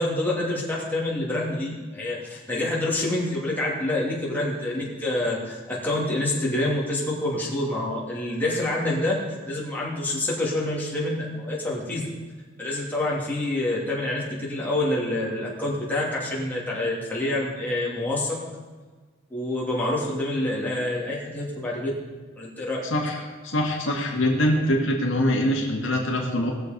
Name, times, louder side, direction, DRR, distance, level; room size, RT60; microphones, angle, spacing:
voice 1, 0.0-9.2 9.5-12.0 12.6-18.4 19.3-21.9 22.4-22.8, left 1 dB, 10° left, -6 dB, 2.8 m, -27 dB
voice 2, 22.8-26.5, left 1 dB, 65° left, 0 dB, 1.8 m, -24 dB
19.0 x 6.9 x 5.3 m, 1.4 s
head